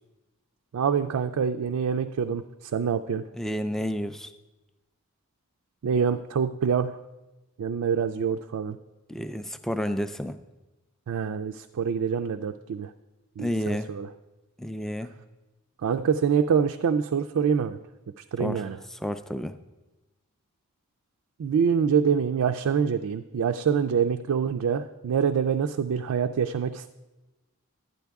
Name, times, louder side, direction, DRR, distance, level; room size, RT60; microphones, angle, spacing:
voice 1, 0.7-3.2 5.8-7.0 7.6-8.8 11.1-12.9 13.4-14.1 15.8-17.8 18.2-18.8 21.4-26.9, right 7 dB, 75° right, 7 dB, 0.4 m, -25 dB
voice 2, 3.4-4.3 9.1-10.4 13.4-13.9 14.6-15.1 18.4-19.5, equal, ahead, 10 dB, 0.3 m, -31 dB
12.0 x 9.3 x 3.5 m, 1.1 s
head